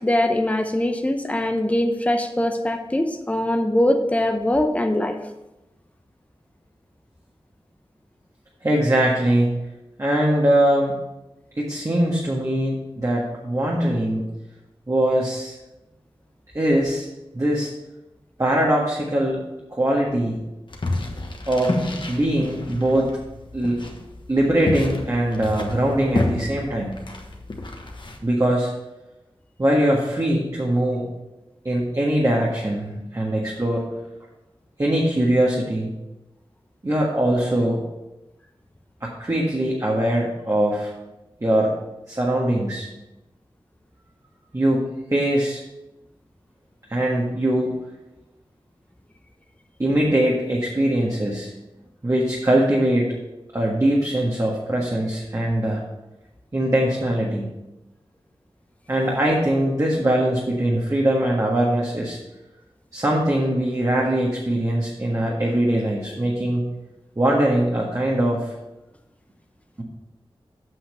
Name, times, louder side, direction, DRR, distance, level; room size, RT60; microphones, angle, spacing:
voice 1, 0.0-5.2, left 1 dB, 15° left, 5 dB, 0.8 m, -22 dB
voice 2, 8.6-9.6 10.0-11.0 11.6-14.2 14.9-15.6 16.5-17.1 17.3-17.7 18.4-19.4 19.7-20.4 21.5-21.8 22.1-23.1 23.5-23.8 24.3-26.9 28.2-28.7 29.6-31.1 31.6-33.8 34.8-35.9 36.8-37.8 39.0-40.9 41.4-41.7 42.1-42.9 44.5-45.6 46.9-47.7 49.8-51.5 52.0-53.1 53.5-55.8 56.5-57.5 58.9-62.2 62.9-66.7 67.1-68.5, right 1 dB, 35° right, -4 dB, 1.6 m, -21 dB
sound 1, 20.7-28.2, left 2 dB, 55° left, 1.3 m, -30 dB
8.0 x 5.8 x 5.6 m, 0.99 s
wide cardioid pair, 55°, 10 cm